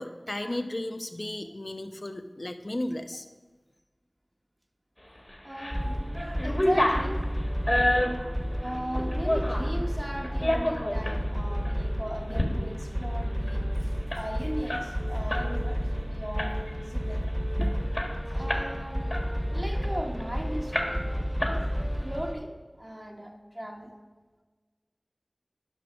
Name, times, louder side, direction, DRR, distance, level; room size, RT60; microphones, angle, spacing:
voice 1, 0.0-3.3, left 1 dB, 60° left, 8 dB, 0.7 m, -34 dB
sound 1, 5.3-5.8 6.1-9.7 10.2-11.2 11.6-11.8 12.2-12.5 12.8-12.9 13.2-15.5 15.8-16.0 16.4-16.8 17.3-17.4 17.6-18.7 19.1-20.3 20.7-21.1 21.4-22.0, left 1 dB, 30° left, 1.6 m, -29 dB
voice 2, 5.4-7.2 7.6-17.3 17.6-17.8 18.3-19.1 19.5-21.0 21.4-21.7 22.0-24.0, equal, 25° right, 1 dB, 1.0 m, -38 dB
sound 2, 5.7-22.3, equal, 5° right, 1.2 m, -31 dB
11.0 x 6.2 x 6.2 m, 1.3 s
wide cardioid pair, 40°, 0 cm